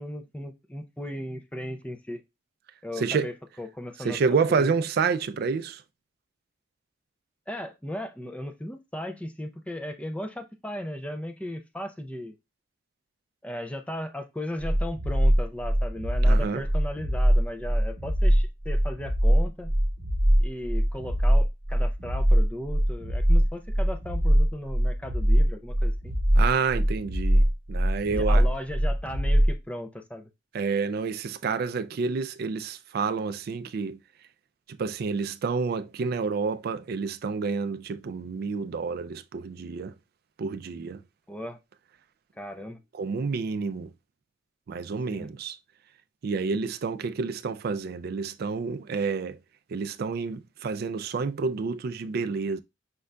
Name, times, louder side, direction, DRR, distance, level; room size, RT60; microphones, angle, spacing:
voice 1, 0.0-2.2 2.8-3.3 3.6-4.7 7.5-12.4 13.4-19.7 20.4-26.1 28.1-30.3 41.3-41.6 42.4-42.8 45.1-45.3, left 1 dB, 5° left, 0.5 m, -36 dB
voice 2, 3.0-3.3 4.0-5.8 16.3-16.6 26.4-28.5 30.5-34.0 34.7-39.9 40.4-41.0 42.9-43.9 44.7-45.6 46.2-49.4 49.7-52.6, right 5 dB, 55° right, 0.3 m, -29 dB
sound 1, 14.6-29.6, equal, 35° right, 1.0 m, -22 dB
5.3 x 3.7 x 2.2 m
head